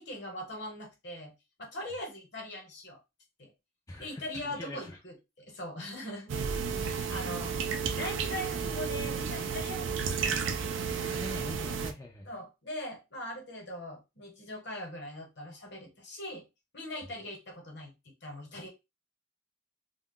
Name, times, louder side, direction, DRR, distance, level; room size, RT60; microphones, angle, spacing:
voice 1, 0.0-1.3 1.6-3.0 3.4-3.5 4.0-6.3 6.7-7.6 8.0-10.5 12.3-16.4 16.7-18.7, left 1 dB, 60° left, 1 dB, 1.0 m, -41 dB
voice 2, 3.9-5.0 6.0-6.2 11.1-12.3, left 2 dB, 15° left, -1 dB, 0.4 m, -44 dB
sound 1, 6.3-11.9, right 6 dB, 70° right, 0.4 m, -32 dB
2.3 x 2.1 x 3.6 m, 0.24 s
head